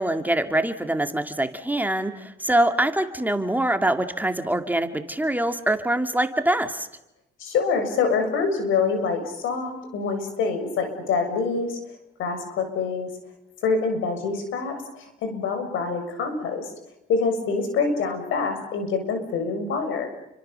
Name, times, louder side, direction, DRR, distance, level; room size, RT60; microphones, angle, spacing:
voice 1, 0.0-6.9, right 1 dB, 10° right, 6 dB, 2.4 m, -24 dB
voice 2, 7.4-11.8 12.2-13.1 13.6-16.7 17.1-20.1, left 4 dB, 85° left, 6 dB, 7.0 m, -25 dB
30.0 x 24.5 x 6.9 m, 0.88 s
cardioid pair, 90°, 20 cm